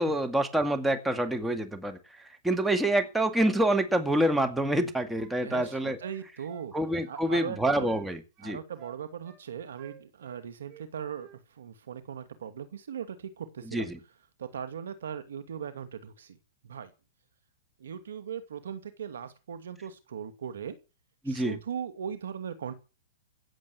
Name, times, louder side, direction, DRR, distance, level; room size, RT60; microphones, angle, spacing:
voice 1, 0.0-2.0 2.4-6.0 6.7-8.6 13.7-14.0 21.2-21.6, right 1 dB, 5° right, 5 dB, 2.1 m, -27 dB
sound 1, 5.1-6.7 7.0-8.1 8.4-9.4 9.8-10.9 11.1-11.4, right 10 dB, 35° right, 6.4 m, -52 dB
voice 2, 5.4-6.7 7.1-7.9 8.4-11.3 11.6-13.9 14.4-16.4 16.6-16.9 17.8-20.8 21.3-22.7, right 8 dB, 75° right, 10 dB, 2.4 m, -39 dB
16.5 x 7.8 x 8.2 m, 0.32 s
hypercardioid pair, 120°, 0 cm